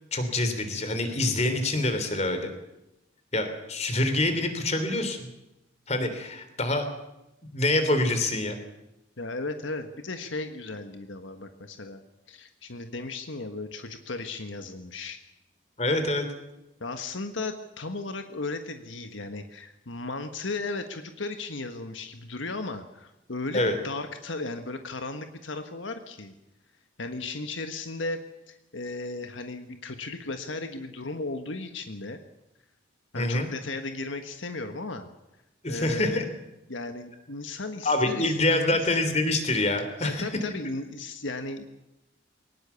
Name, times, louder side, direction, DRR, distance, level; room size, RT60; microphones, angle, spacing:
voice 1, 0.1-2.5 3.3-5.3 5.9-6.9 7.5-8.6 15.8-16.3 23.5-23.8 33.1-33.5 35.6-36.3 37.8-40.2, left 2 dB, 35° left, 8 dB, 3.4 m, -26 dB
voice 2, 9.2-12.0 12.3-15.2 16.8-26.3 27.0-28.2 28.5-32.2 33.1-35.1 35.7-36.3 36.7-39.0 40.0-41.7, left 3 dB, 80° left, 7 dB, 1.5 m, -35 dB
22.5 x 19.5 x 7.1 m, 0.91 s
head